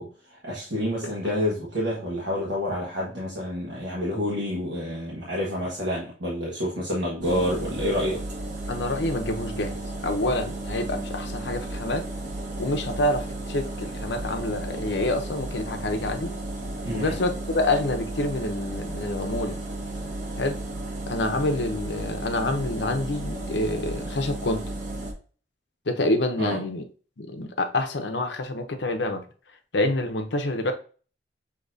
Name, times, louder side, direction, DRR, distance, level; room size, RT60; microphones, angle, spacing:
voice 1, 0.0-8.2 16.8-17.2 26.4-26.7, equal, 85° right, -5 dB, 1.3 m, -28 dB
sound 1, 7.2-25.1, right 2 dB, 45° right, 1.2 m, -34 dB
voice 2, 8.7-9.8 10.0-12.1 12.6-16.3 16.9-19.6 20.4-20.6 21.1-24.6 25.9-26.8 27.2-29.2 29.7-30.7, left 2 dB, 75° left, 6 dB, 0.8 m, -27 dB
6.4 x 2.9 x 2.6 m, 0.39 s
head